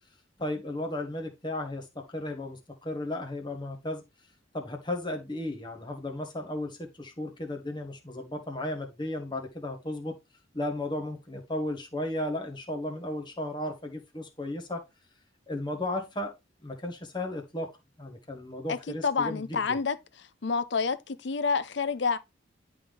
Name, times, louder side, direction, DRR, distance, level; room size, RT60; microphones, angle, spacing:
voice 1, 0.4-4.0 4.5-10.2 10.5-14.8 15.5-16.3 16.6-19.8, left 1 dB, 25° left, 1.4 m, -35 dB
voice 2, 18.7-20.0 20.4-22.2, left 5 dB, 60° left, 0.6 m, -28 dB
11.0 x 3.7 x 3.3 m
head